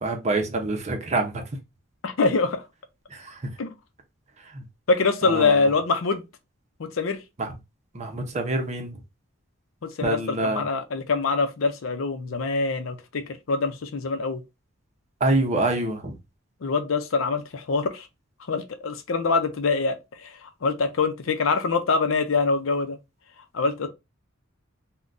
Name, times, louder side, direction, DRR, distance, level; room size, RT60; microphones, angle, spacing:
voice 1, 0.0-1.4 3.1-3.5 4.5-4.6 5.2-5.6 7.4-7.5 7.9-9.0 10.0-10.6 15.2-16.1, right 2 dB, 35° right, 0.6 m, -26 dB
voice 2, 2.0-2.6 3.6-3.7 4.9-6.2 6.8-7.2 9.8-14.4 16.6-18.1 18.5-20.0 20.2-23.0 23.5-23.9, left 4 dB, 75° left, 0.6 m, -24 dB
3.7 x 2.2 x 2.5 m
head